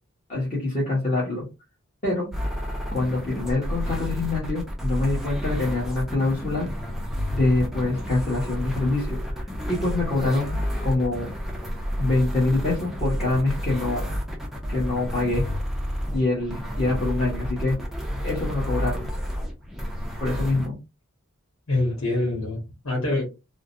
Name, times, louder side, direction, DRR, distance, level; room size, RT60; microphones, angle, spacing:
voice 1, 0.3-1.4 2.0-2.3 2.9-6.7 7.3-11.3 12.0-14.1 14.7-15.4 16.1-17.8 18.2-19.1 20.2-20.8, left 2 dB, 30° left, -7 dB, 1.3 m, -25 dB
sound 1, 2.3-20.7, equal, ahead, 0.6 m, -30 dB
voice 2, 21.7-23.2, left 2 dB, 70° left, -2 dB, 1.4 m, -25 dB
3.6 x 2.1 x 2.6 m, 0.26 s
head